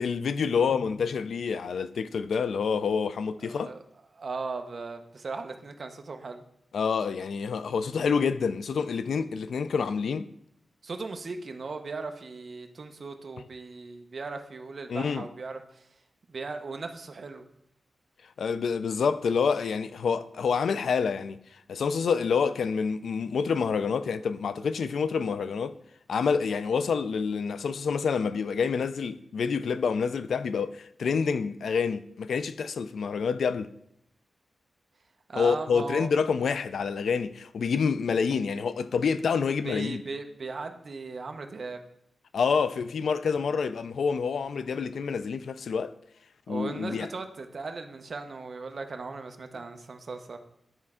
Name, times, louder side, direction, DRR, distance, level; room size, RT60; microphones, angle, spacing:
voice 1, 0.0-3.7 6.7-10.3 14.9-15.3 18.4-21.4 21.7-25.8 26.1-33.7 35.4-40.0 42.3-45.9 46.5-47.1, left 6 dB, 80° left, 0.3 m, -27 dB
voice 2, 4.1-6.4 10.8-15.9 16.3-17.5 35.3-36.1 39.6-41.8 46.5-50.4, right 3 dB, 45° right, 0.6 m, -37 dB
9.8 x 4.3 x 3.6 m
wide cardioid pair, 180°, 0 cm